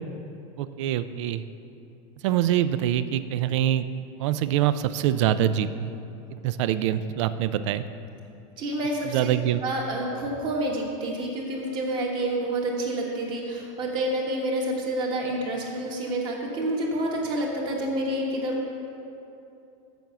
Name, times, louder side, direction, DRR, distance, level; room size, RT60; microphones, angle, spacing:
voice 1, 0.6-1.4 2.2-3.9 4.2-5.9 6.3-7.8 9.0-9.6, right 11 dB, 75° right, 13 dB, 0.4 m, -24 dB
voice 2, 8.6-9.2 9.6-18.6, right 1 dB, 30° right, -1 dB, 1.4 m, -28 dB
7.6 x 7.0 x 6.9 m, 2.8 s
supercardioid pair, 180°, 16 cm